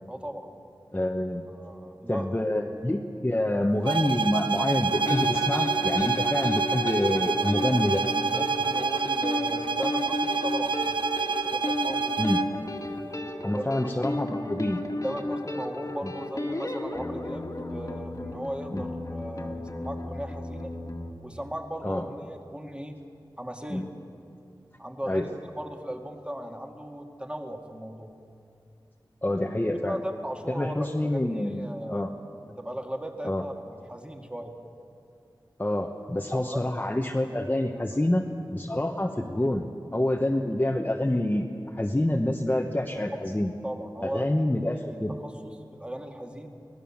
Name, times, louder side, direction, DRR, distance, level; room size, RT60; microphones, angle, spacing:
voice 1, 0.1-0.5 1.5-2.4 8.3-10.9 11.4-12.2 13.3-13.9 14.3-14.5 15.0-20.7 21.2-23.0 23.4-23.9 24.8-28.1 29.9-30.7 31.0-32.1 32.5-34.5 36.3-36.9 43.6-44.3 44.6-45.3 45.7-46.5, equal, 15° right, 3 dB, 2.1 m, -37 dB
voice 2, 0.9-1.5 2.1-8.0 12.2-12.4 13.4-14.8 16.0-16.1 18.7-18.8 21.8-22.1 23.7-23.9 25.1-25.3 29.2-30.0 30.5-32.1 33.2-33.5 35.6-38.3 38.5-43.5 44.0-45.1, left 1 dB, 20° left, 2 dB, 1.2 m, -27 dB
sound 1, 3.8-12.6, right 5 dB, 80° right, 0.8 m, -27 dB
sound 2, 4.9-21.1, left 2 dB, 40° left, 1.9 m, -34 dB
24.0 x 17.5 x 7.3 m, 2.5 s
wide cardioid pair, 55°, 8 cm